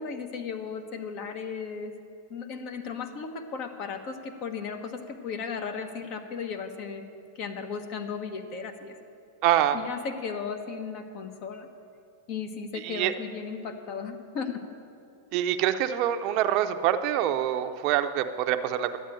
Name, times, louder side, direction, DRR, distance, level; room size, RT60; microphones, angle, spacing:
voice 1, 0.0-1.9 2.3-7.1 7.3-9.0 9.7-11.7 12.3-14.6, left 5 dB, 45° left, 6 dB, 1.3 m, -35 dB
voice 2, 9.4-9.8 12.9-13.1 15.3-19.0, right 11 dB, 45° right, 9 dB, 0.7 m, -25 dB
11.5 x 8.7 x 9.0 m, 2.5 s
hypercardioid pair, 130°, 0 cm